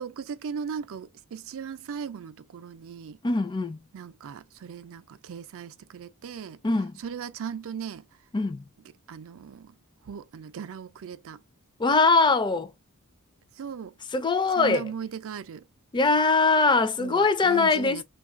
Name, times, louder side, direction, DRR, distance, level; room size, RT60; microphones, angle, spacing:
voice 1, 0.0-3.2 3.9-6.6 7.0-8.1 9.1-9.7 10.0-11.4 13.6-13.9 14.6-15.6 17.0-18.0, right 7 dB, 65° right, 0.4 m, -38 dB
voice 2, 3.2-3.8 6.6-7.0 8.3-8.6 11.8-12.7 14.1-14.8 15.9-18.0, left 3 dB, 20° left, 0.4 m, -22 dB
3.1 x 2.3 x 3.6 m
head